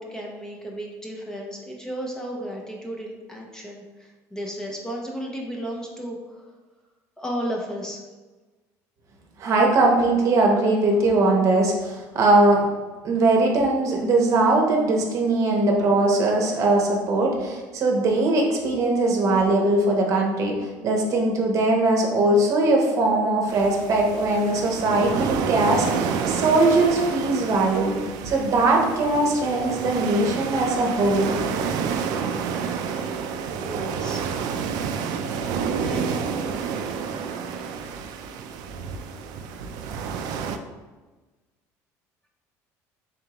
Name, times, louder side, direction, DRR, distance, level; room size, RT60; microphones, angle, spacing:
voice 1, 0.0-6.5 7.2-8.0 33.5-34.3 35.8-36.2 36.8-37.1, equal, 10° left, -1 dB, 0.6 m, -34 dB
voice 2, 9.4-12.7 13.0-28.0 28.2-31.3, right 2 dB, 45° right, 0 dB, 0.8 m, -20 dB
sound 1, 23.5-40.6, right 6 dB, 70° right, 0.3 m, -29 dB
3.7 x 3.5 x 2.9 m, 1.2 s
cardioid pair, 120°, 7 cm